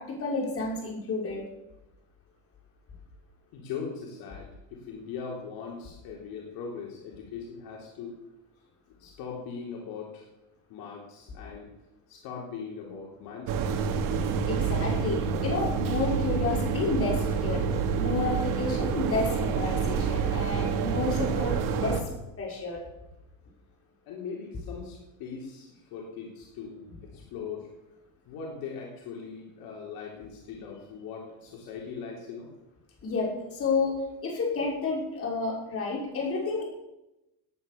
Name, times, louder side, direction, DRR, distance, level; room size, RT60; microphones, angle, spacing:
voice 1, 0.0-1.4 14.5-17.6 18.0-22.0 22.4-22.8 33.0-36.6, left 3 dB, 35° left, -1 dB, 5.9 m, -30 dB
voice 2, 3.5-8.2 9.0-10.3 10.7-11.7 12.1-14.0 24.1-27.7 28.3-32.5, left 6 dB, 65° left, -1 dB, 3.7 m, -40 dB
sound 1, 13.5-22.0, right 6 dB, 55° right, 2.4 m, -28 dB
18.0 x 9.6 x 7.0 m, 0.93 s
cardioid pair, 125°, 38 cm